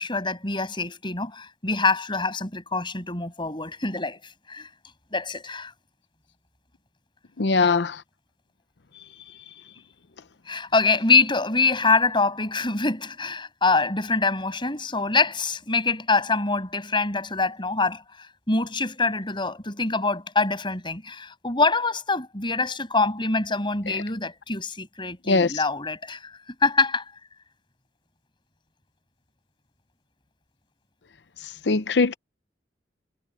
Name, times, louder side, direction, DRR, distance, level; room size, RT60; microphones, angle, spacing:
voice 1, 0.0-4.7 5.1-5.7 10.5-18.0 18.5-27.0, left 3 dB, 25° left, 6.6 m, -25 dB
voice 2, 7.4-8.0 25.3-25.5 31.7-32.1, left 4 dB, 65° left, 0.7 m, -21 dB
head